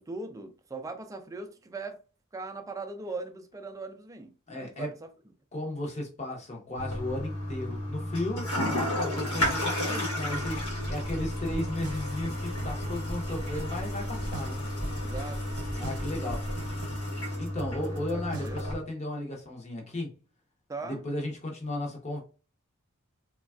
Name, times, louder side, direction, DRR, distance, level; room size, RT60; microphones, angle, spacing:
voice 1, 0.0-2.0 2.3-4.9 9.2-9.4 15.0-15.4 16.0-16.4 17.8-18.6 20.7-21.0, right 3 dB, 15° right, 0.3 m, -40 dB
voice 2, 4.5-4.9 5.5-14.6 15.8-16.4 17.4-20.1 20.9-22.2, left 1 dB, 30° left, 0.8 m, -35 dB
Toilet flush, 6.8-18.7, left 1 dB, 75° left, 1.1 m, -33 dB
sound 1, 10.3-16.9, equal, 55° left, 1.1 m, -40 dB
sound 2, 10.8-18.8, right 3 dB, 80° right, 0.6 m, -44 dB
3.3 x 2.3 x 2.3 m
head